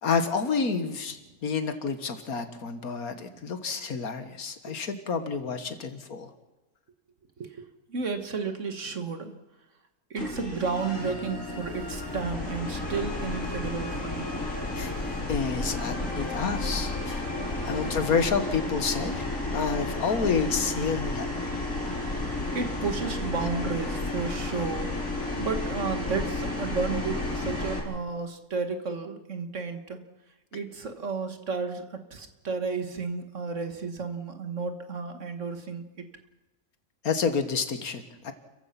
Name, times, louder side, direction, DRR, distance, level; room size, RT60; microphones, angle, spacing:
voice 1, 0.0-6.3 14.7-14.9 15.3-17.3 17.6-21.3 37.0-38.3, left 5 dB, 90° left, 9 dB, 2.0 m, -29 dB
voice 2, 7.4-9.4 10.1-14.2 17.2-17.5 22.5-30.0 30.5-36.1, right 4 dB, 55° right, 7 dB, 1.9 m, -33 dB
sound 1, 10.2-27.8, left 2 dB, 65° left, 4.6 m, -32 dB
sound 2, 10.7-18.1, left 2 dB, 15° left, 4.2 m, -42 dB
30.0 x 15.0 x 5.9 m, 1.1 s
omnidirectional pair, 1.5 m